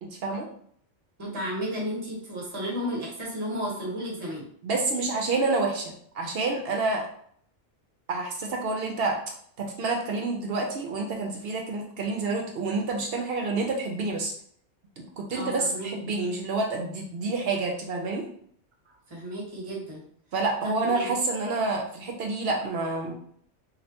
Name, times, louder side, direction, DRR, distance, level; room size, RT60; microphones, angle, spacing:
voice 1, 0.0-0.5 4.6-7.1 8.1-9.2 9.6-14.3 15.0-18.3 20.3-23.1, right 3 dB, 65° right, 1 dB, 0.7 m, -28 dB
voice 2, 1.2-4.5 15.3-15.9 19.1-20.0 20.6-21.1, equal, 25° right, -3 dB, 1.0 m, -33 dB
3.2 x 2.5 x 2.8 m, 0.62 s
omnidirectional pair, 1.2 m